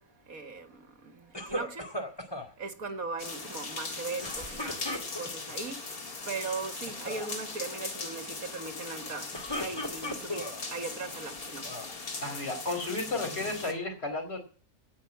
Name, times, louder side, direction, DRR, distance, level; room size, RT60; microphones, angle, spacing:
voice 1, 0.3-0.7 1.1-1.8 2.6-4.8 5.2-5.8 6.3-9.3 9.6-11.6, right 4 dB, 65° right, 8 dB, 2.3 m, -38 dB
sound 1, 1.3-2.5 4.2-5.5 6.2-6.6 6.9-7.3 9.1-10.6 11.2-12.0, equal, 15° left, 2.2 m, -37 dB
sound 2, 3.2-13.7, left 3 dB, 75° left, 2.7 m, -40 dB
voice 2, 12.2-14.4, left 2 dB, 40° left, 3 dB, 4.7 m, -33 dB
17.0 x 5.9 x 8.4 m, 0.40 s
omnidirectional pair, 1.6 m